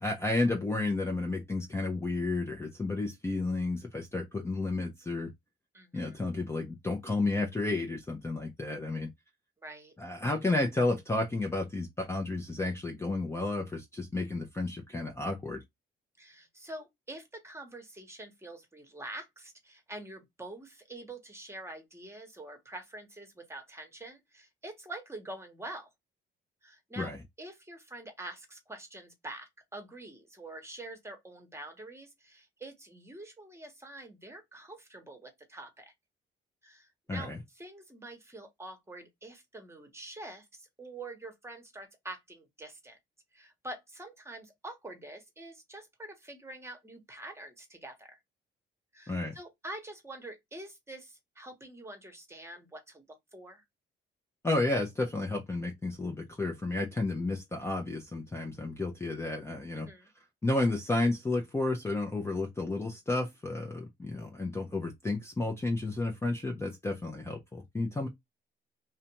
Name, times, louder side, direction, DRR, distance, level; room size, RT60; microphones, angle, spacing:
voice 1, 0.0-5.3 5.9-9.1 10.0-15.6 27.0-27.2 37.1-37.4 49.1-49.3 54.4-59.9 60.4-68.1, left 2 dB, 15° left, 0.5 m, -32 dB
voice 2, 5.7-6.2 9.6-9.9 16.2-25.9 26.6-27.1 27.4-35.9 36.6-43.0 43.3-48.2 48.9-53.0 53.3-53.6 59.7-60.1, right 2 dB, 15° right, 1.0 m, -46 dB
2.5 x 2.2 x 2.8 m
cardioid pair, 90°, 20 cm